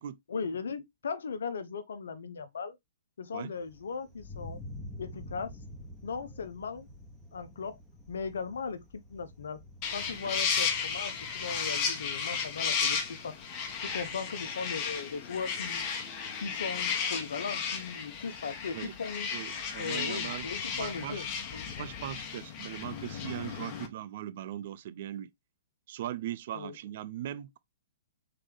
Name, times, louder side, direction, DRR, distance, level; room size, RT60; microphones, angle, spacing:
voice 1, 0.3-2.8 3.2-4.6 5.0-5.5 6.0-6.9 7.3-7.8 8.1-9.6 9.9-13.4 13.8-15.8 16.4-19.3 19.8-21.7 26.5-26.8, left 5 dB, 75° left, 0.7 m, -38 dB
Thunder, 3.6-14.2, left 1 dB, 5° left, 1.3 m, -49 dB
sound 1, 9.8-23.9, left 6 dB, 35° left, 1.1 m, -34 dB
voice 2, 19.3-20.5 20.7-21.2 21.8-25.3 25.9-27.6, right 12 dB, 55° right, 0.5 m, -39 dB
3.8 x 3.3 x 3.5 m
hypercardioid pair, 120°, 0 cm